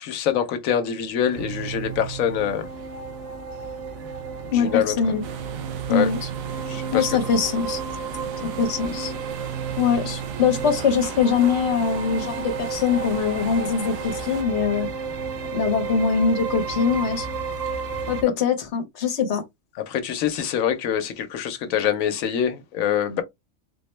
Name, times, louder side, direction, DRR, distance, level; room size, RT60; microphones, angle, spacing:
voice 1, 0.0-2.7 4.4-4.9 5.9-6.1 6.7-7.1 19.9-23.2, left 9 dB, 85° left, 1.1 m, -25 dB
sound 1, 1.3-18.2, right 6 dB, 65° right, 1.0 m, -32 dB
voice 2, 4.5-5.2 5.9-6.3 6.9-7.8 8.4-9.1 9.8-14.9 15.5-17.3 18.1-19.4, left 6 dB, 60° left, 1.1 m, -23 dB
sound 2, 5.2-14.4, right 6 dB, 90° right, 1.0 m, -38 dB
4.0 x 2.1 x 3.1 m
omnidirectional pair, 1.4 m